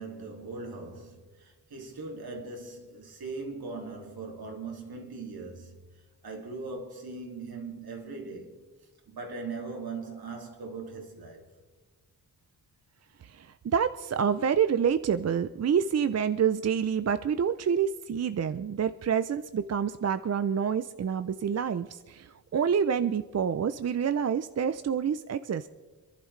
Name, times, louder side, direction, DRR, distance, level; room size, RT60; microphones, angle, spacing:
voice 1, 0.0-8.6 9.1-11.5, right 3 dB, 70° right, 2.5 m, -40 dB
voice 2, 13.2-25.7, right 7 dB, 45° right, 0.5 m, -27 dB
28.0 x 11.5 x 3.2 m
wide cardioid pair, 120°, 39 cm